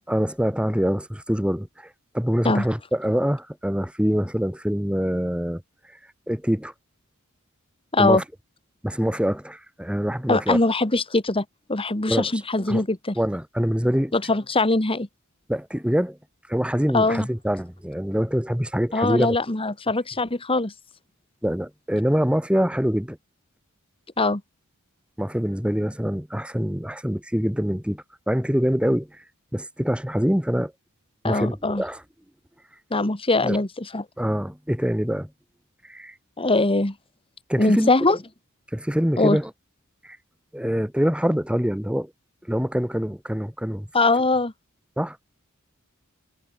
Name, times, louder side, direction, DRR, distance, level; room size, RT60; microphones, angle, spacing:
voice 1, 0.1-1.9 2.1-5.6 6.3-6.7 8.0-8.2 8.8-10.6 12.1-12.4 12.7-12.8 13.2-14.3 15.5-16.2 16.5-19.4 21.4-23.2 25.2-29.2 29.5-30.7 31.2-32.0 33.4-33.6 34.2-35.3 35.9-36.1 37.5-38.2 38.7-39.5 40.0-40.2 40.5-42.1 42.5-43.9 45.0-45.2, equal, 5° right, 3.5 m, -25 dB
voice 2, 10.3-11.4 11.7-13.2 14.1-15.1 16.9-17.3 18.9-20.7 24.2-24.4 31.2-31.8 32.9-34.1 36.4-36.9 37.6-38.2 39.2-39.4 43.9-44.5, left 2 dB, 25° left, 1.9 m, -22 dB
head